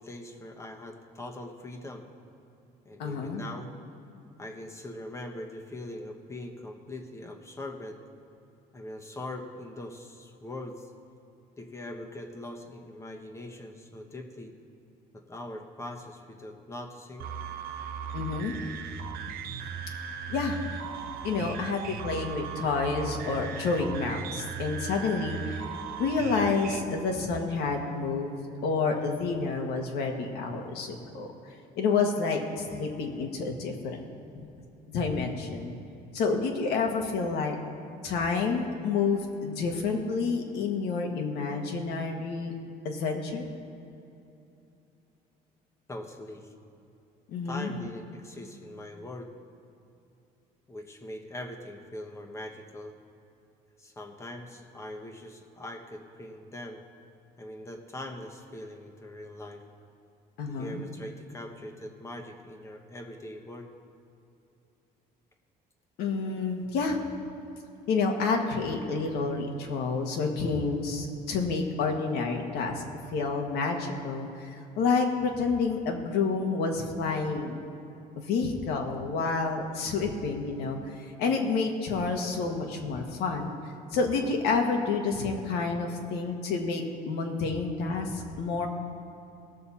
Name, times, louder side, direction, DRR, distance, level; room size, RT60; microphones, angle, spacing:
voice 1, 0.0-2.1 2.8-3.7 4.4-8.0 8.7-10.9 11.6-14.6 15.1-17.3 45.9-46.5 47.4-49.3 50.7-53.0 53.8-56.8 57.4-59.6 60.5-63.7, left 1 dB, 15° left, 3 dB, 1.1 m, -42 dB
voice 2, 3.0-3.4 18.1-18.5 20.3-20.6 21.2-25.7 26.0-28.3 28.6-31.3 31.8-34.0 34.9-35.8 36.1-37.6 38.0-42.5 42.8-43.5 47.3-47.7 60.4-60.8 66.0-67.0 67.9-72.8 73.1-77.5 78.2-83.5 83.9-88.7, left 4 dB, 80° left, 3 dB, 1.6 m, -29 dB
sound 1, 17.2-26.8, right 6 dB, 65° right, 0.7 m, -37 dB
18.0 x 6.8 x 4.2 m, 2.8 s
cardioid pair, 135°, 17 cm